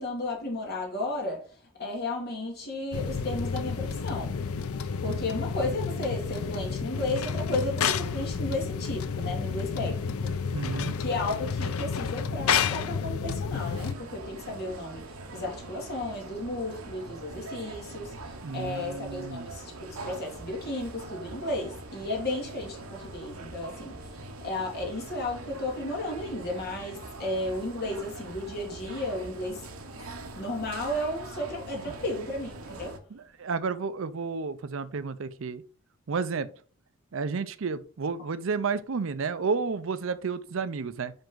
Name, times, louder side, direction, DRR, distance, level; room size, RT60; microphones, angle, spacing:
voice 1, 0.0-4.4 5.0-10.7 11.0-19.7 20.0-29.7 30.0-32.9, left 2 dB, 50° left, 2.3 m, -34 dB
sound 1, 2.9-13.9, left 6 dB, 90° left, 0.5 m, -30 dB
voice 2, 10.5-10.9 18.4-19.5 31.9-32.0 33.1-35.6 36.1-36.5 37.1-41.1, right 5 dB, 65° right, 0.5 m, -31 dB
sound 2, 13.5-33.0, right 2 dB, 90° right, 1.0 m, -43 dB
5.3 x 5.1 x 3.7 m
head